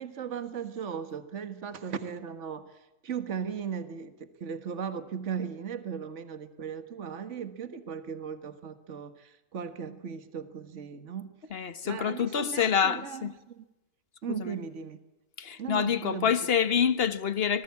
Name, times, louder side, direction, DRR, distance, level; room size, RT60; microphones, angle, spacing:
voice 1, 0.0-2.7 3.0-11.3 11.8-13.3 13.6-13.7 14.2-15.0 15.6-16.3, right 7 dB, 50° right, 1.8 m, -37 dB
voice 2, 11.5-13.3 14.3-14.6 15.4-17.6, left 7 dB, 45° left, 1.3 m, -27 dB
26.5 x 19.0 x 8.4 m
omnidirectional pair, 1.6 m